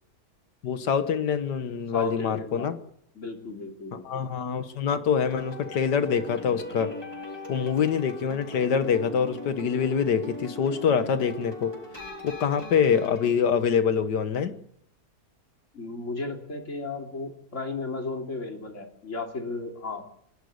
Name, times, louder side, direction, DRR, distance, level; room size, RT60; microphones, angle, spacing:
voice 1, 0.6-2.8 4.0-6.9 7.5-11.7 12.2-14.5, left 7 dB, 85° left, 10 dB, 1.9 m, -25 dB
voice 2, 1.9-2.7 3.2-4.0 15.7-20.0, left 3 dB, 45° left, 2 dB, 3.6 m, -34 dB
sound 1, 5.2-13.3, left 1 dB, 15° left, 3.8 m, -40 dB
25.0 x 11.5 x 9.6 m, 0.72 s
omnidirectional pair, 1.8 m